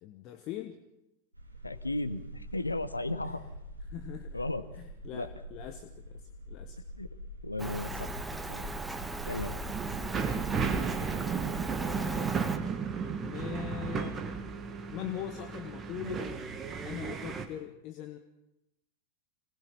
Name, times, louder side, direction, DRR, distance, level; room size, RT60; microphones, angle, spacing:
voice 1, 0.0-0.8 3.2-3.4 3.9-4.4 4.7-6.2 6.5-6.8 11.7-12.4 13.1-14.2 14.9-16.4 16.8-18.2, left 11 dB, 40° left, 7 dB, 1.4 m, -41 dB
sound 1, 1.3-11.1, equal, 85° right, 4.0 m, -45 dB
voice 2, 1.6-3.4 4.3-4.6 5.1-5.3 7.0-7.1 7.4-8.1 8.5-8.7 9.2-9.6, left 2 dB, 85° left, 13 dB, 1.0 m, -34 dB
Rain, 7.6-12.6, right 2 dB, 10° right, 1.4 m, -38 dB
sound 2, 9.7-17.4, right 5 dB, 25° right, 2.0 m, -34 dB
26.0 x 19.0 x 5.8 m, 0.89 s
figure-of-eight pair, 90°, 0 cm